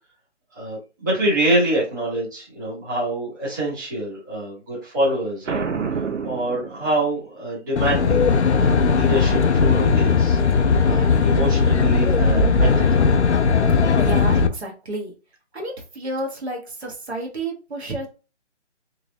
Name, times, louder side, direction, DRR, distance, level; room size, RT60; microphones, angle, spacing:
voice 1, 0.5-5.7 6.2-12.9, right 1 dB, 15° right, -9 dB, 1.3 m, -26 dB
Boom, 5.5-7.3, right 5 dB, 85° right, 0.8 m, -28 dB
Aircraft, 7.8-14.5, left 5 dB, 70° left, 0.6 m, -18 dB
voice 2, 14.0-15.1 15.5-18.1, right 1 dB, 60° right, 0 dB, 1.4 m, -30 dB
3.9 x 3.3 x 2.3 m, 0.33 s
hypercardioid pair, 175°, 36 cm